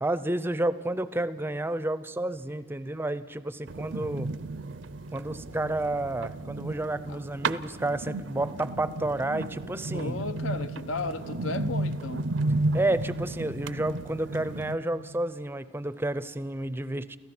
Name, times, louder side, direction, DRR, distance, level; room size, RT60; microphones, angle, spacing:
voice 1, 0.0-4.3 5.1-10.3 12.7-17.2, right 1 dB, 10° right, 0.5 m, -30 dB
sound 1, 3.7-14.8, right 2 dB, 65° right, 0.5 m, -33 dB
sound 2, 5.5-15.2, right 2 dB, 65° left, 1.2 m, -53 dB
voice 2, 9.9-12.3, left 3 dB, 85° left, 0.9 m, -34 dB
29.5 x 15.0 x 6.0 m
head